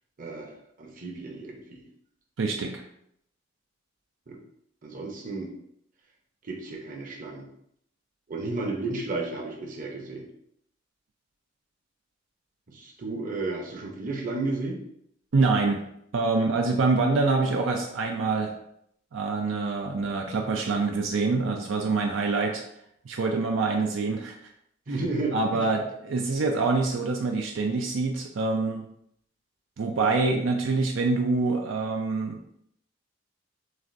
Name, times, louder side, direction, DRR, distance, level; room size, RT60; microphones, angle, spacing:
voice 1, 0.2-1.8 4.3-4.4 4.8-5.5 6.4-7.5 8.3-10.3 12.7-14.8 24.9-25.7, right 3 dB, 45° right, 1 dB, 0.8 m, -33 dB
voice 2, 2.4-2.8 15.3-15.8 16.1-18.5 19.1-22.6 23.1-24.4 25.3-28.8 29.8-32.6, right 3 dB, 80° right, 2 dB, 0.5 m, -25 dB
6.3 x 2.5 x 2.6 m, 0.73 s
head